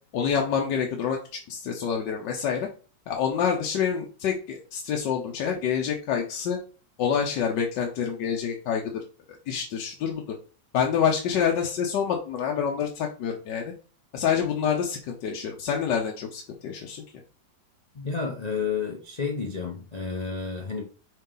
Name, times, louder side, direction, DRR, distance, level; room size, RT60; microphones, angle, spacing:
voice 1, 0.1-1.2 1.5-2.7 3.1-6.6 7.0-8.9 9.5-10.2 10.7-13.7 14.1-17.0, left 7 dB, 70° left, 1.4 m, -27 dB
voice 2, 17.9-20.8, left 5 dB, 40° left, 0.5 m, -31 dB
5.5 x 4.6 x 3.8 m
omnidirectional pair, 2.1 m